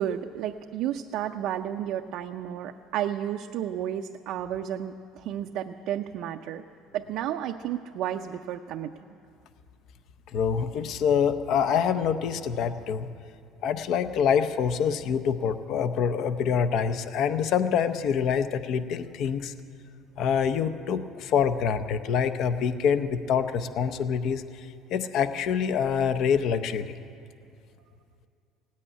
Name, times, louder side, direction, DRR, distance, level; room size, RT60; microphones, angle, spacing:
voice 1, 0.0-6.6 6.9-8.9, right 10 dB, 60° right, 4 dB, 0.5 m, -32 dB
voice 2, 10.3-13.1 13.6-19.5 20.2-26.9, left 7 dB, 55° left, 11 dB, 0.6 m, -26 dB
16.5 x 8.5 x 9.8 m, 2.4 s
cardioid pair, 150°, 0 cm